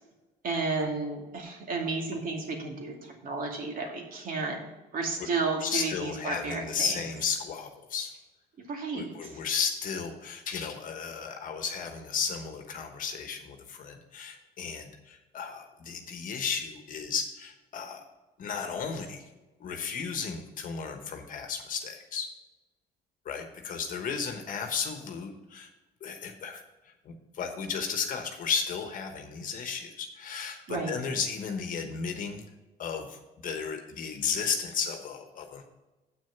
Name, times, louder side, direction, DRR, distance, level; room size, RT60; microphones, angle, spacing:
voice 1, 0.4-4.6 4.9-6.9 8.7-9.3 30.7-31.0, right 3 dB, 55° right, 1 dB, 2.4 m, -32 dB
voice 2, 5.6-8.1 8.9-18.0 18.4-19.2 19.6-22.3 23.2-25.7 26.0-26.6 27.0-32.4 32.8-33.2 33.4-35.7, left 6 dB, 55° left, 5 dB, 1.2 m, -34 dB
7.9 x 6.3 x 5.9 m, 1.1 s
cardioid pair, 110°, 17 cm